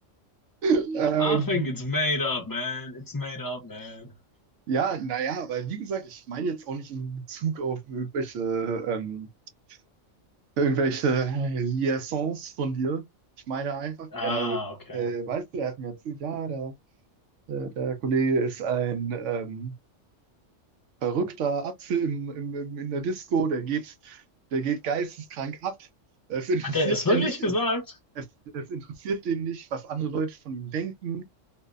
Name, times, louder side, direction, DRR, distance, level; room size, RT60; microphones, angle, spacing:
voice 1, 0.6-1.7 4.7-9.3 10.6-13.0 13.5-14.6 14.9-16.7 17.5-19.7 21.0-24.2 24.5-25.9 26.3-27.3 28.2-28.3 28.5-31.2, right 5 dB, 75° right, 0.9 m, -28 dB
voice 2, 1.2-4.1 14.1-15.1 26.7-27.9, left 2 dB, 30° left, 0.4 m, -28 dB
2.5 x 2.1 x 2.3 m
omnidirectional pair, 1.3 m